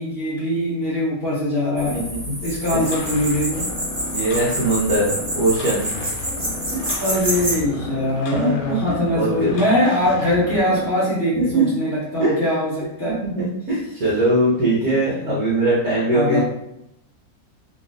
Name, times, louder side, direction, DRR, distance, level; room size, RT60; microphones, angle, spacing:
voice 1, 0.0-2.0 2.4-3.6 7.0-13.2 15.2-15.4 16.1-16.4, left 1 dB, 50° left, -6 dB, 0.8 m, -22 dB
sound 1, 1.8-7.5, equal, 25° right, 1.6 m, -28 dB
sound 2, 2.7-10.9, left 3 dB, 75° left, 1.1 m, -34 dB
voice 2, 4.1-5.9 6.7-6.8 8.3-8.8 9.1-9.6 11.3-11.6 12.2-12.3 13.1-16.4, right 2 dB, 65° right, -8 dB, 1.4 m, -21 dB
3.0 x 2.8 x 2.5 m, 0.82 s
omnidirectional pair, 1.9 m